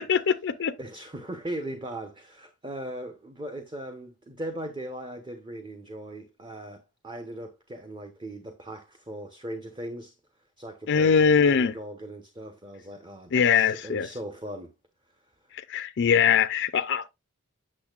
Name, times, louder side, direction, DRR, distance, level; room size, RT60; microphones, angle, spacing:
voice 1, 0.0-0.7 10.9-11.7 13.3-14.1 15.5-17.1, left 6 dB, 55° left, 0.5 m, -22 dB
voice 2, 0.8-10.1 10.6-14.7, right 1 dB, 20° right, 0.9 m, -39 dB
8.6 x 6.5 x 2.4 m
head